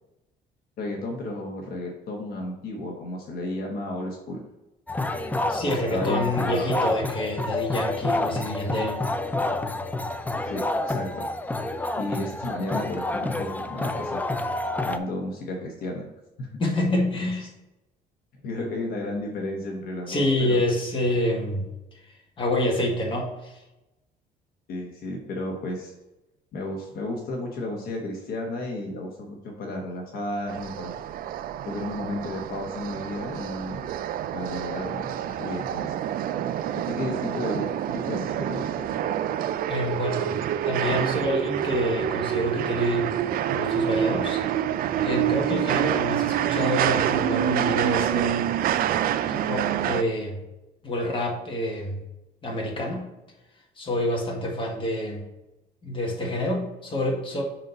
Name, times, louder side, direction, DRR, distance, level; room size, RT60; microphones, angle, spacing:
voice 1, 0.8-4.4 5.6-6.9 10.4-11.3 12.0-14.2 14.8-16.1 16.4-16.5 18.4-20.6 24.7-25.9 26.5-30.9 31.6-33.9 34.3-35.9 36.7-38.9, left 1 dB, 65° left, 1 dB, 1.2 m, -33 dB
sound 1, 4.9-15.0, left 2 dB, 10° left, 0.4 m, -28 dB
voice 2, 5.5-9.0 16.6-17.5 20.1-23.6 39.7-43.1 43.5-44.4 45.0-48.5 49.3-50.4 50.8-52.0 52.4-53.1 53.8-55.2 55.8-57.4, left 1 dB, 30° left, 0 dB, 1.8 m, -27 dB
sound 2, 30.5-50.0, right 10 dB, 60° right, 0.4 m, -27 dB
6.3 x 4.0 x 4.0 m, 0.97 s
cardioid pair, 110°, 17 cm